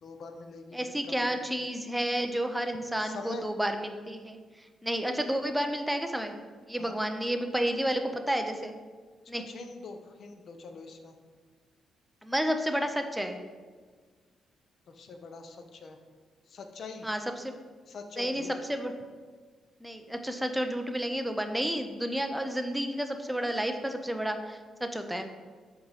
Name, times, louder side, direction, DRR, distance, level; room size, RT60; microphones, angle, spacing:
voice 1, 0.0-0.8 1.1-1.5 3.0-3.5 6.8-7.1 9.4-11.2 14.9-16.0 16.5-17.1 17.9-18.5, left 4 dB, 45° left, 6 dB, 0.6 m, -44 dB
voice 2, 0.7-6.3 6.7-8.7 9.3-9.4 12.2-13.4 17.0-17.6 18.2-18.4 18.7-18.9 19.8-25.3, equal, ahead, 5 dB, 0.5 m, -31 dB
7.9 x 3.7 x 5.6 m, 1.5 s
cardioid pair, 180°, 0 cm